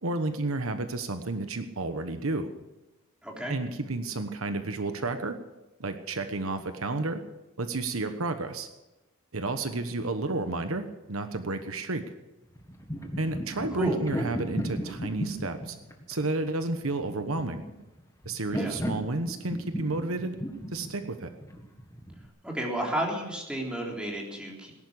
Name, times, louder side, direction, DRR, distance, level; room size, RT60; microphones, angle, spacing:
voice 1, 0.0-2.5 3.5-5.4 5.8-7.2 7.6-8.7 9.3-12.0 13.2-15.8 16.1-17.6 18.2-20.3 20.7-21.3, right 2 dB, 75° right, 8 dB, 1.2 m, -31 dB
voice 2, 3.2-3.5 13.7-14.0 18.6-18.7 22.4-24.7, right 1 dB, 5° right, -2 dB, 3.5 m, -32 dB
sound 1, 12.6-22.3, equal, 15° left, 1.7 m, -35 dB
18.5 x 11.0 x 6.6 m, 1.0 s
head